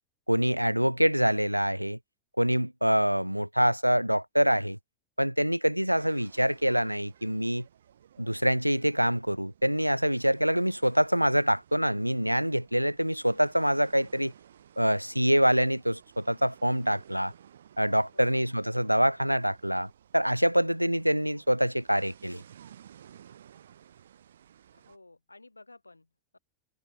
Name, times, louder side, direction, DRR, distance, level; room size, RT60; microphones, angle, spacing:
voice 1, 0.3-2.0 2.4-4.8 5.2-7.7 8.2-14.3 14.8-17.3 17.8-22.4, equal, 90° right, 0.8 m, -25 dB
sound 1, 5.9-25.0, right 9 dB, 65° right, 3.0 m, -56 dB
voice 2, 18.1-18.5 20.5-20.7 24.7-26.4, left 2 dB, 85° left, 5.1 m, -55 dB
figure-of-eight pair, 90°, 0 cm